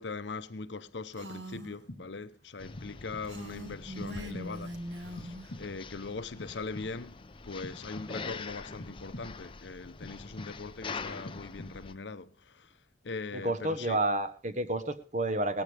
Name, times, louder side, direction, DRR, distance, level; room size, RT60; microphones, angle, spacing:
voice 1, 0.0-12.8 13.0-14.0, left 4 dB, 80° left, 0.8 m, -41 dB
Female speech woman speaking, 1.1-1.8 3.2-5.5, equal, 85° right, 2.0 m, -41 dB
sound 1, 1.5-2.3 2.8-3.5 4.0-4.8 5.2-6.0 6.4-7.2 7.6-8.4 8.8-9.6 10.0-10.8 11.2-12.0, left 1 dB, 55° left, 1.2 m, -48 dB
sound 2, 2.6-11.9, left 4 dB, 30° left, 0.7 m, -45 dB
voice 2, 13.3-15.6, right 2 dB, 40° right, 1.1 m, -30 dB
18.0 x 14.0 x 3.4 m
head